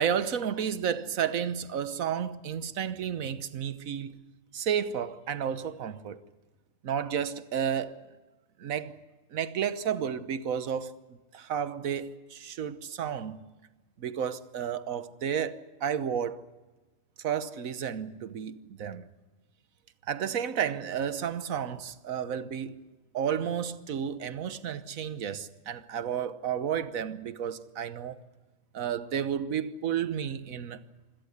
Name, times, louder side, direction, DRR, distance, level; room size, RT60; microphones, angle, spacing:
voice 1, 0.0-4.2 4.5-6.2 6.8-8.0 8.6-9.0 9.3-10.9 11.3-13.4 14.0-16.4 17.2-19.0 20.1-22.8 23.1-28.2 28.7-30.8, right 8 dB, 85° right, 1.4 m, -32 dB
26.5 x 17.0 x 8.1 m
omnidirectional pair, 1.4 m